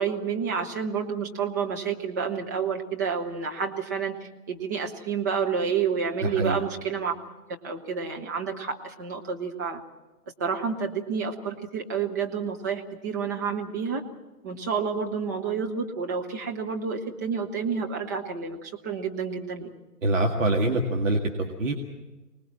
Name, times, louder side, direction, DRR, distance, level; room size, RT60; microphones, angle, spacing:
voice 1, 0.0-4.2 4.5-7.1 7.6-9.8 10.4-14.0 14.4-19.7, right 6 dB, 10° right, 1 dB, 0.7 m, -29 dB
voice 2, 6.2-6.6 20.0-21.7, right 2 dB, 55° right, 2 dB, 2.0 m, -25 dB
24.5 x 19.5 x 7.3 m, 1.1 s
figure-of-eight pair, 135°, 47 cm